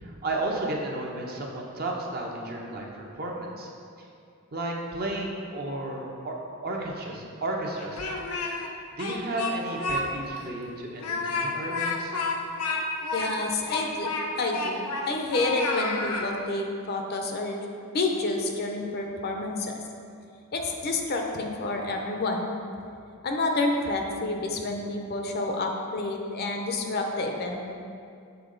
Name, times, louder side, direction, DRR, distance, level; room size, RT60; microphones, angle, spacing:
voice 1, 0.0-3.7 4.0-4.1 4.5-6.3 6.6-8.1 8.6-12.2, right 1 dB, 45° right, 0 dB, 0.7 m, -33 dB
Speech, 7.7-8.7 9.0-10.0 10.4-10.5 11.0-15.1 15.3-16.3, left 3 dB, 85° left, 0.6 m, -30 dB
voice 2, 13.1-14.1 14.4-17.7 17.9-19.8 20.5-22.5 23.2-27.6, left 2 dB, 45° left, 2 dB, 0.6 m, -29 dB
7.0 x 4.0 x 3.8 m, 2.4 s
head